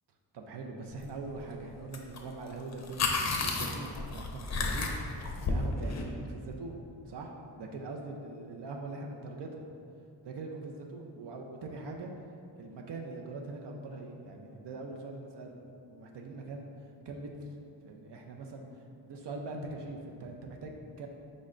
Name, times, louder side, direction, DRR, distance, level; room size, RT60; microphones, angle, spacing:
voice 1, 0.3-4.9 5.4-9.6 10.2-12.1 12.6-17.5 17.8-18.7 19.0-21.1, right 3 dB, 70° right, 1 dB, 0.5 m, -42 dB
sound 1, 1.9-2.2 2.5-6.0, left 3 dB, 40° left, 0.5 m, -32 dB
5.1 x 2.1 x 3.7 m, 2.5 s
wide cardioid pair, 80°, 43 cm